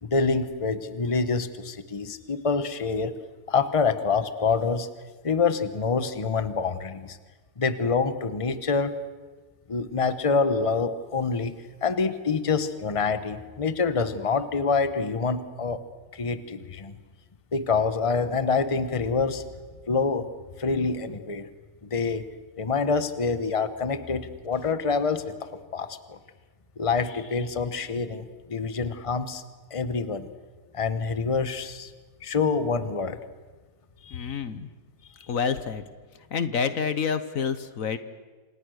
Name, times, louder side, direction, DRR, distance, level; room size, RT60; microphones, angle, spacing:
voice 1, 0.0-3.1 3.5-4.9 5.2-7.2 7.6-9.0 9.7-11.6 11.8-15.8 16.1-16.9 17.5-19.4 19.9-20.3 20.6-21.5 21.8-22.3 22.6-26.2 26.8-29.4 29.7-30.3 30.7-31.9 32.2-33.2 34.0-34.3, left 4 dB, 25° left, 11 dB, 1.2 m, -26 dB
voice 2, 34.1-34.7 35.3-35.8 36.3-38.0, left 6 dB, 70° left, 12 dB, 1.5 m, -28 dB
28.0 x 27.5 x 6.5 m, 1.4 s
omnidirectional pair, 1.5 m